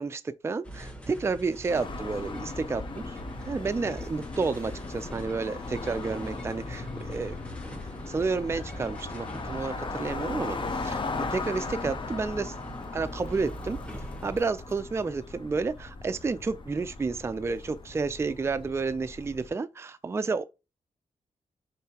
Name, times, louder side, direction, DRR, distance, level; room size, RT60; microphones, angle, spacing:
voice 1, 0.0-3.2 3.5-7.4 8.1-12.5 12.9-13.8 14.2-20.4, right 4 dB, 20° right, 0.4 m, -31 dB
sound 1, 0.6-14.4, right 1 dB, 10° left, 1.1 m, -42 dB
sound 2, 1.7-19.5, left 3 dB, 40° left, 0.6 m, -38 dB
5.6 x 3.3 x 2.8 m
wide cardioid pair, 125°, 13 cm